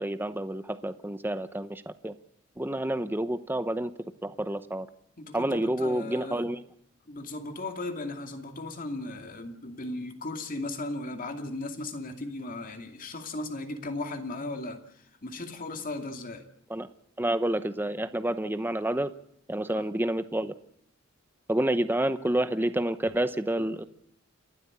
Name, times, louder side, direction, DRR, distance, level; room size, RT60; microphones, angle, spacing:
voice 1, 0.0-2.1 2.6-3.9 4.2-4.9 5.3-6.6 16.7-16.9 17.2-19.1 19.5-20.5 21.5-23.8, right 1 dB, 10° right, 0.8 m, -29 dB
voice 2, 5.2-6.4 7.1-16.4 19.7-19.9 23.6-23.7, left 2 dB, 45° left, 2.5 m, -37 dB
29.0 x 12.0 x 8.7 m
head